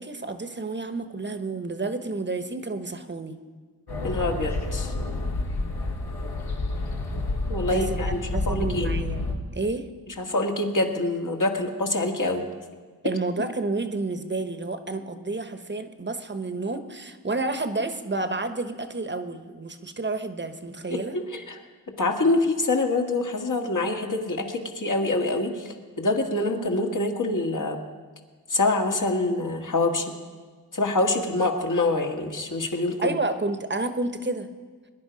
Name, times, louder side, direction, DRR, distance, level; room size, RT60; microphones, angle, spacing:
voice 1, 0.0-3.4 7.6-9.2 9.5-9.9 13.0-21.2 33.0-34.5, right 3 dB, 30° right, 9 dB, 1.1 m, -30 dB
sound 1, 3.9-9.3, left 2 dB, 80° left, 2.1 m, -29 dB
voice 2, 4.0-4.9 7.5-8.2 8.5-8.9 10.2-12.4 20.9-21.6 22.0-27.8 28.5-30.1 30.7-33.1, left 2 dB, 55° left, 2 dB, 1.9 m, -25 dB
22.0 x 10.5 x 5.2 m, 1.5 s
cardioid pair, 75°, 37 cm